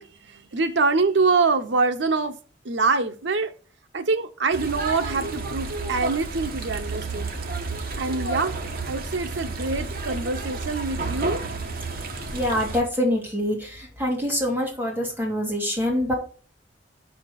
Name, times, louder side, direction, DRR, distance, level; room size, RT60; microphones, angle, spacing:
voice 1, 0.0-2.4 2.6-3.5 3.9-7.3 7.9-8.6 8.9-11.4, right 4 dB, 75° right, 0.8 m, -25 dB
sound 1, 4.5-12.8, right 3 dB, 55° right, 1.2 m, -31 dB
voice 2, 12.3-16.1, equal, 10° right, 2.2 m, -25 dB
6.0 x 5.1 x 6.5 m
head